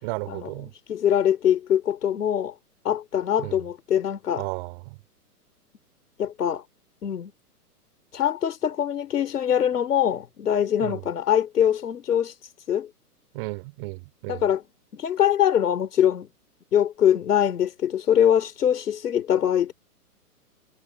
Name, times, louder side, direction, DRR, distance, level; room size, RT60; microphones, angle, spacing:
voice 1, 0.0-0.7 3.4-3.6 4.4-5.0 10.8-11.0 13.3-14.4, right 27 dB, 35° right, 3.6 m, -34 dB
voice 2, 0.9-2.5 2.8-4.4 6.2-6.6 7.0-7.3 8.1-12.3 12.7-12.9 14.3-14.6 14.9-16.3 16.7-19.7, left 9 dB, 75° left, 3.5 m, -23 dB
hypercardioid pair, 135°, 47 cm